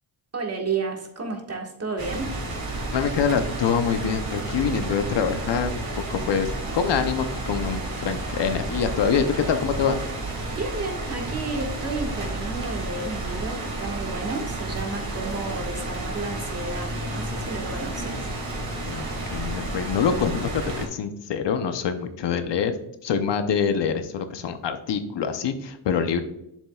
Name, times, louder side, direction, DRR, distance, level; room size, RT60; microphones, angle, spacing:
voice 1, 0.3-2.3 10.5-18.3, right 3 dB, 30° right, 2 dB, 1.7 m, -32 dB
sound 1, 2.0-20.9, right 2 dB, 45° right, 2.6 m, -31 dB
voice 2, 2.9-5.8 6.1-6.5 6.7-10.0 18.8-22.7 23.0-26.2, left 6 dB, 60° left, 8 dB, 0.9 m, -25 dB
7.3 x 7.2 x 2.4 m, 0.79 s
cardioid pair, 100°, 47 cm